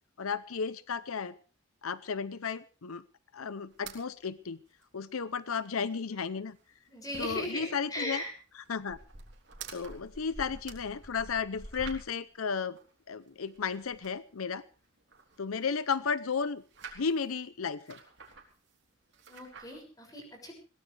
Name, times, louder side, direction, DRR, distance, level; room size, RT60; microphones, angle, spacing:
voice 1, 0.2-1.3 1.8-3.0 3.3-4.6 4.9-6.6 7.2-8.2 8.5-9.0 9.7-12.8 13.1-14.6 15.4-16.6 17.0-18.0, left 5 dB, 85° left, 15 dB, 0.7 m, -34 dB
sound 1, 3.7-4.0 4.3-4.4 4.7-4.8 5.2-5.3 5.6-6.2 6.5-12.3 12.8-14.2 14.7-16.0 16.3-17.3 17.8-18.8 19.1-19.8, right 3 dB, 55° right, 3.5 m, -48 dB
voice 2, 6.9-8.3 19.3-20.5, left 1 dB, 15° left, 3 dB, 6.3 m, -38 dB
21.5 x 18.0 x 3.4 m, 0.36 s
head